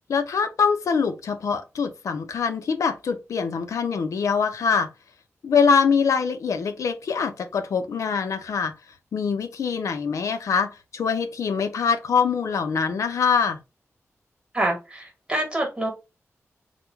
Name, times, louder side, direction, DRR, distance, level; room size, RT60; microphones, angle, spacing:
voice 1, 0.1-4.9 5.4-8.7 9.1-13.6, left 6 dB, 85° left, 0.4 m, -24 dB
voice 2, 14.5-15.9, right 1 dB, 20° right, 1.3 m, -26 dB
3.0 x 2.1 x 3.4 m
wide cardioid pair, 105°, 5 cm